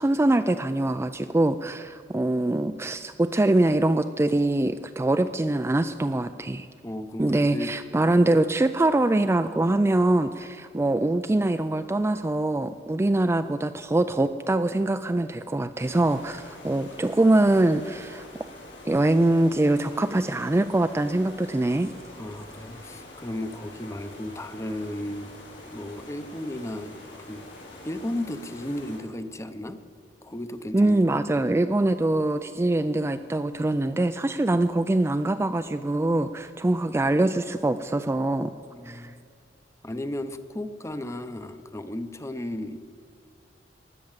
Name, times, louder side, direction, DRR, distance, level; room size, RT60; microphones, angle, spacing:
voice 1, 0.0-6.7 7.2-18.5 18.9-21.9 30.7-38.5 38.9-39.1, right 2 dB, 15° right, 8 dB, 0.3 m, -23 dB
voice 2, 6.8-7.7 22.2-25.3 25.7-26.9 27.3-27.5 27.8-29.8 30.2-31.0 38.7-39.2 39.8-42.8, left 1 dB, 15° left, 10 dB, 0.7 m, -34 dB
sound 1, 15.8-29.0, left 1 dB, 85° left, 5.2 m, -45 dB
16.5 x 10.5 x 7.4 m, 2.3 s
head